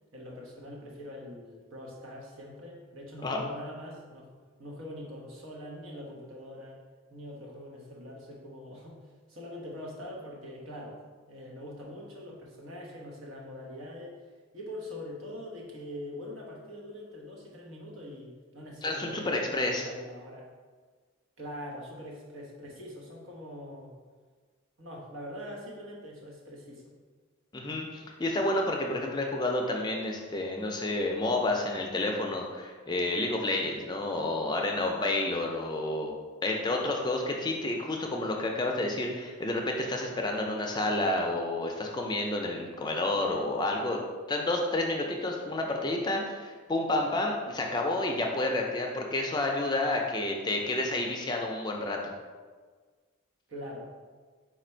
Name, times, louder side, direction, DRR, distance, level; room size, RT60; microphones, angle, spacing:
voice 1, 0.1-4.3 4.6-6.8 7.1-11.0 11.3-14.2 14.5-20.5 21.4-23.9 24.8-26.9 53.5-53.9, left 1 dB, 85° right, -3 dB, 1.0 m, -43 dB
voice 2, 18.8-19.9 27.5-36.1 36.4-44.0 44.3-52.1, left 2 dB, 20° left, 1 dB, 0.4 m, -30 dB
4.3 x 2.5 x 4.3 m, 1.5 s
head